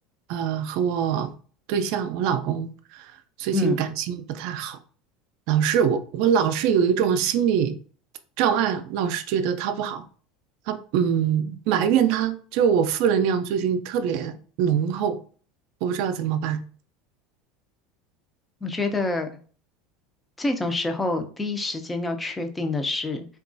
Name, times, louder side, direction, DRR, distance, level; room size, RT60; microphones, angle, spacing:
voice 1, 0.3-1.3 1.7-3.1 3.4-4.8 5.5-7.7 8.4-10.0 10.7-15.2 15.8-16.6, right 8 dB, 65° right, 0.3 m, -23 dB
voice 2, 18.6-19.4 20.4-23.2, left 2 dB, 15° left, 0.4 m, -27 dB
2.9 x 2.3 x 2.5 m
supercardioid pair, 100°, 0 cm